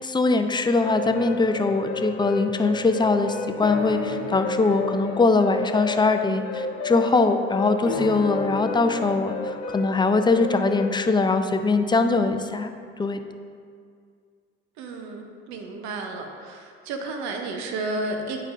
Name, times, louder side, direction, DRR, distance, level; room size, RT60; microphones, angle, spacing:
voice 1, 0.0-12.7 13.0-13.2, left 3 dB, 15° left, 7 dB, 0.5 m, -22 dB
sound 1, 0.8-11.1, left 3 dB, 55° left, 1.0 m, -32 dB
voice 2, 14.8-18.4, right 2 dB, 65° right, 3 dB, 0.9 m, -32 dB
9.5 x 5.3 x 2.6 m, 2.2 s
hypercardioid pair, 65°, 30 cm